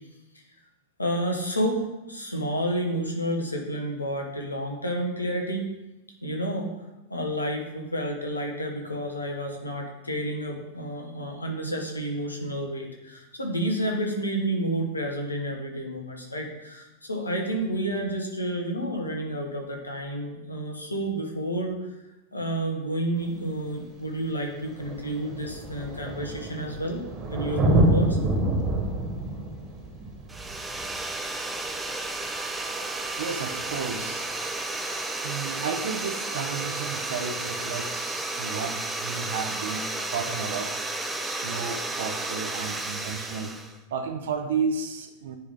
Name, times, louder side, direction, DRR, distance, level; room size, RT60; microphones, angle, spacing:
voice 1, 1.0-5.7 6.2-6.7 7.1-21.8 22.3-27.0 27.3-28.2, right 1 dB, 80° left, 1 dB, 1.1 m, -30 dB
Thunder, 23.2-23.3 24.3-24.4 24.6-31.9 33.6-33.7, right 1 dB, 25° right, 1.4 m, -27 dB
sound 1, 30.3-43.7, right 2 dB, 10° right, 0.6 m, -32 dB
voice 2, 33.2-34.3 34.6-40.7 41.1-43.5 43.9-45.4, right 5 dB, 60° right, 6 dB, 0.6 m, -33 dB
10.0 x 3.5 x 3.6 m, 1.0 s
figure-of-eight pair, 90°, 0 cm